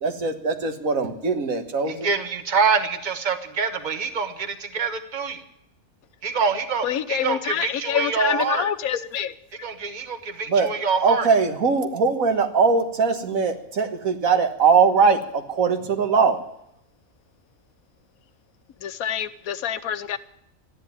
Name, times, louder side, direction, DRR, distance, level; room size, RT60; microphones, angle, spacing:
voice 1, 0.0-2.1 10.5-10.7 11.0-16.4, right 5 dB, 75° right, 7 dB, 1.8 m, -21 dB
voice 2, 1.9-5.4 6.2-8.7 9.6-11.3, right 5 dB, 35° right, 8 dB, 1.4 m, -25 dB
voice 3, 6.8-9.3 18.8-20.2, left 9 dB, 85° left, 13 dB, 1.3 m, -26 dB
13.5 x 10.0 x 9.7 m, 0.76 s
omnidirectional pair, 1.5 m